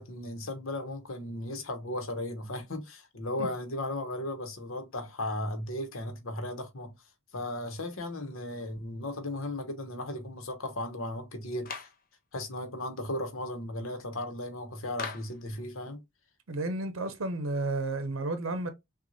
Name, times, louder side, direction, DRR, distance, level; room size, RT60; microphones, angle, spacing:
voice 1, 0.0-6.9 7.3-11.9 12.3-16.0, left 1 dB, 80° left, 1.0 m, -36 dB
Clapping, 11.7-12.0 15.0-15.4, left 5 dB, 45° left, 0.6 m, -38 dB
voice 2, 16.5-18.7, right 2 dB, 80° right, 0.7 m, -32 dB
6.0 x 2.4 x 2.7 m
head